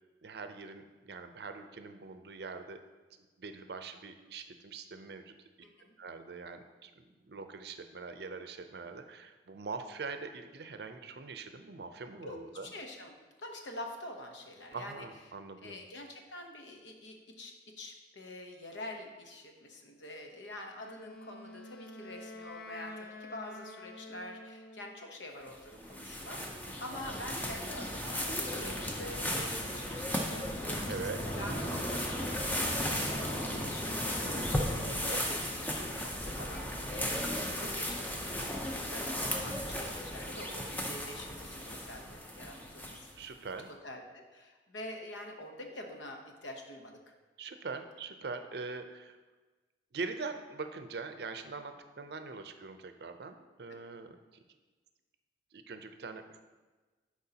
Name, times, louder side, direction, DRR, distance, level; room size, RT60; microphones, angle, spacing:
voice 1, 0.2-2.8 3.4-5.3 6.0-12.7 14.7-15.8 30.9-31.2 34.8-35.2 43.2-43.7 47.4-49.2 49.9-54.2 55.5-56.4, right 4 dB, 65° right, 8 dB, 0.5 m, -43 dB
voice 2, 5.6-5.9 12.2-15.1 15.6-38.0 38.3-43.1 43.8-47.0 53.7-53.8, left 1 dB, 90° left, 3 dB, 0.9 m, -46 dB
Wind instrument woodwind instrument, 20.8-25.0, left 1 dB, 55° left, 0.5 m, -48 dB
sound 1, 25.5-43.2, equal, 10° left, 0.6 m, -36 dB
sound 2, 27.5-35.0, equal, 35° left, 1.7 m, -41 dB
10.5 x 4.6 x 2.8 m, 1.3 s
head